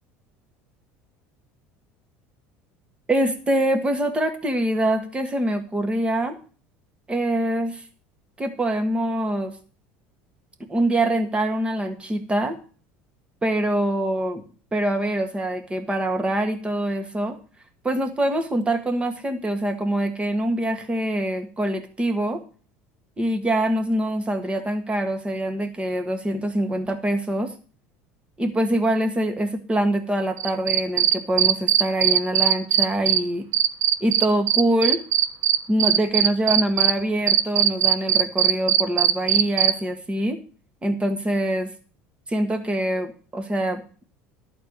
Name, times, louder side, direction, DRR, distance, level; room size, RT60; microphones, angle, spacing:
voice 1, 3.1-6.4 7.1-7.8 8.4-9.5 10.7-12.6 13.4-14.4 14.7-17.4 17.8-22.4 23.2-27.5 28.4-33.5 34.0-35.0 35.7-40.4 40.8-41.7 42.3-43.8, right 1 dB, 20° right, 7 dB, 1.7 m, -24 dB
Cricket, 30.4-33.2 33.5-36.9 37.3-39.7, right 11 dB, 55° right, 0.7 m, -18 dB
11.5 x 4.5 x 8.1 m, 0.41 s
supercardioid pair, 95°, 6 cm